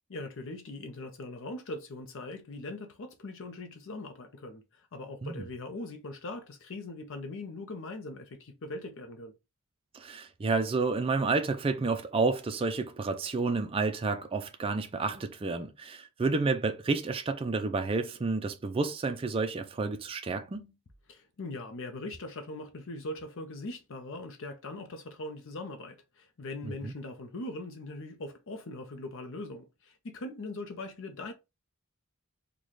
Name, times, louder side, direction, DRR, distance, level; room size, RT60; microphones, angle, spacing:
voice 1, 0.1-9.3 21.1-31.3, left 2 dB, 60° left, 0.6 m, -41 dB
voice 2, 9.9-20.7 26.6-26.9, right 3 dB, 25° right, 0.3 m, -30 dB
3.9 x 2.2 x 3.1 m
head